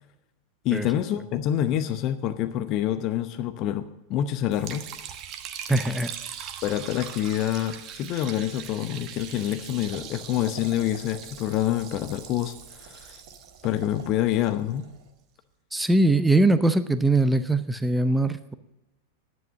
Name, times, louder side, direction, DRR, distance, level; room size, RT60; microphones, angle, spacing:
voice 1, 0.6-4.9 6.6-13.2 13.6-14.8, left 12 dB, 40° left, 11 dB, 0.8 m, -27 dB
Liquid, 4.5-14.7, right 9 dB, 35° right, 1.1 m, -41 dB
voice 2, 5.7-6.1 15.7-18.5, right 2 dB, 5° right, 12 dB, 0.6 m, -21 dB
sound 1, 9.6-15.1, right 5 dB, 50° right, 2.0 m, -50 dB
11.0 x 9.5 x 7.4 m, 0.92 s
figure-of-eight pair, 90°, 0 cm